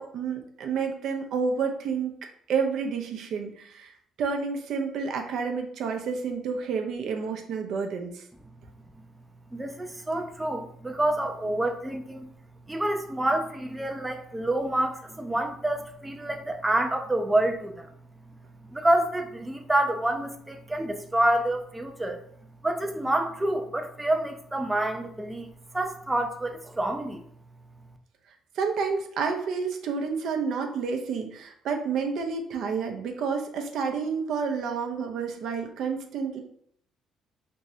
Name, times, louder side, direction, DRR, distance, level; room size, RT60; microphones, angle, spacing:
voice 1, 0.0-2.2 2.5-8.2 28.6-36.4, right 5 dB, 70° right, 4 dB, 0.6 m, -29 dB
voice 2, 9.5-12.3 12.7-17.9 18.7-22.2 22.6-25.5 25.7-27.2, right 1 dB, 10° right, 4 dB, 0.5 m, -27 dB
3.5 x 3.1 x 2.7 m, 0.65 s
cardioid pair, 95°, 0 cm